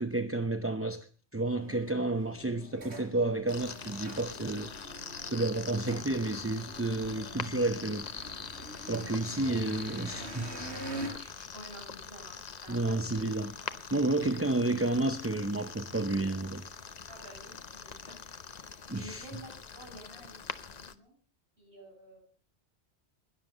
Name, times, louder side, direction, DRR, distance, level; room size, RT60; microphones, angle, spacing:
voice 1, 0.0-4.7 5.2-8.1 8.9-10.6 12.7-13.5 13.9-16.7 18.9-19.3, right 2 dB, 15° right, 0.6 m, -31 dB
sound 1, 1.6-11.1, right 1 dB, 75° right, 4.9 m, -45 dB
sound 2, 3.5-20.9, left 6 dB, 40° left, 0.8 m, -44 dB
voice 2, 9.3-9.6 11.2-13.2 13.6-13.8 17.1-18.4 18.7-21.2 21.6-22.2, right 1 dB, 60° right, 7.4 m, -51 dB
20.5 x 7.4 x 6.7 m
omnidirectional pair, 1.1 m